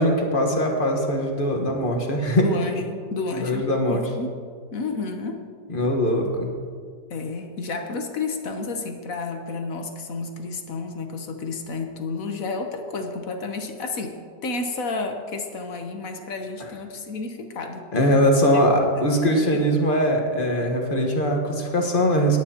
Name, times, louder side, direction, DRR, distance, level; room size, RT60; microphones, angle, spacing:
voice 1, 0.0-2.5 3.4-4.0 5.7-6.5 17.9-22.4, equal, 30° left, 2 dB, 1.3 m, -21 dB
voice 2, 2.4-4.3 4.7-5.4 7.1-17.8 18.5-19.1 19.4-19.6, left 3 dB, 55° left, 5 dB, 1.2 m, -31 dB
18.5 x 9.8 x 2.9 m, 2.1 s
omnidirectional pair, 1.9 m